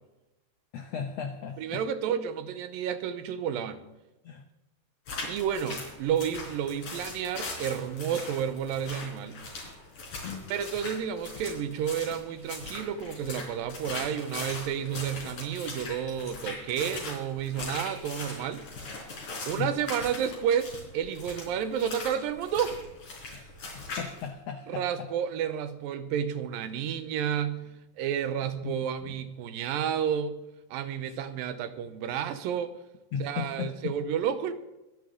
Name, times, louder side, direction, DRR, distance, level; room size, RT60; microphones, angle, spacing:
voice 1, 0.7-1.8 4.2-4.4 10.0-10.5 19.6-19.7 23.3-25.1 28.6-28.7 29.0-29.2 31.1-31.2 33.1-33.9, left 6 dB, 80° left, 6 dB, 1.4 m, -37 dB
voice 2, 1.6-3.8 5.3-9.4 10.5-18.7 19.5-22.8 24.7-27.7 28.0-30.4 30.7-32.7 33.2-34.5, right 8 dB, 80° right, 11 dB, 2.5 m, -31 dB
sound 1, 5.1-24.3, left 3 dB, 55° left, 5.5 m, -40 dB
24.5 x 10.5 x 3.8 m, 0.97 s
omnidirectional pair, 4.2 m